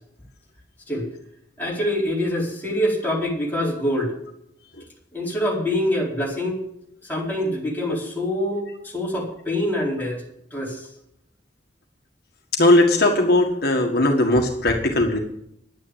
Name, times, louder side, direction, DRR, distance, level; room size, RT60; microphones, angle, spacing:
voice 1, 1.6-4.1 5.1-6.6 7.0-10.2 10.5-10.9, left 1 dB, 10° left, -5 dB, 4.5 m, -25 dB
voice 2, 12.5-15.2, left 1 dB, 60° left, 2 dB, 1.6 m, -18 dB
11.0 x 9.7 x 7.4 m, 0.76 s
head